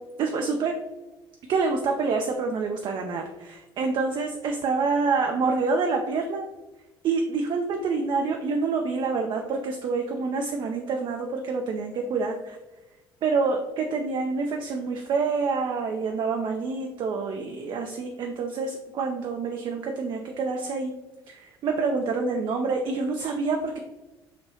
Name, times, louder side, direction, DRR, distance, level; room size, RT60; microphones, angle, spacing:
voice 1, 0.2-0.7 1.5-6.5 7.0-12.6 13.2-20.9 21.3-23.8, right 4 dB, 40° right, 3 dB, 0.3 m, -27 dB
3.3 x 2.5 x 2.7 m, 1.1 s
figure-of-eight pair, 60°, 13 cm